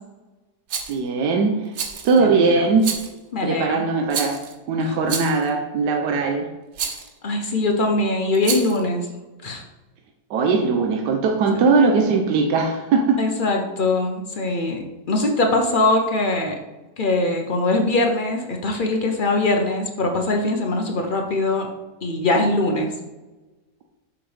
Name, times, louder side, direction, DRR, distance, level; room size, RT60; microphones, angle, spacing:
Rattle, 0.7-1.0 1.7-2.2 2.8-3.2 4.1-4.5 5.1-5.5 6.7-7.1 8.3-8.8, right 6 dB, 55° right, 0.8 m, -29 dB
voice 1, 0.9-1.7 2.0-2.9 3.4-4.4 4.7-6.5 10.3-13.2, right 4 dB, 80° right, 3 dB, 1.3 m, -20 dB
voice 2, 2.2-2.7 3.3-3.8 7.2-9.1 9.4-9.6 13.2-16.5 17.0-21.7 22.0-22.9, left 2 dB, 45° left, 3 dB, 0.6 m, -22 dB
7.0 x 5.3 x 3.3 m, 1.1 s
omnidirectional pair, 1.8 m